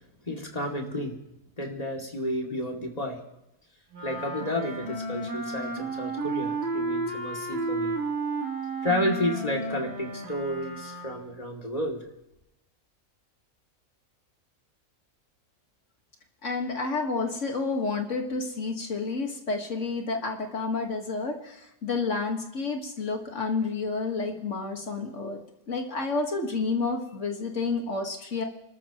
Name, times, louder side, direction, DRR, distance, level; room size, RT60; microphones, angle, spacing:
voice 1, 0.3-1.2 1.6-3.2 4.0-7.9 8.8-12.0, left 1 dB, 25° left, 0 dB, 2.6 m, -31 dB
Wind instrument woodwind instrument, 3.9-11.3, right 2 dB, 50° right, 3.4 m, -32 dB
voice 2, 16.4-25.4 25.7-28.4, left 4 dB, 60° left, 3 dB, 2.0 m, -30 dB
29.5 x 13.5 x 3.0 m, 0.88 s
omnidirectional pair, 1.5 m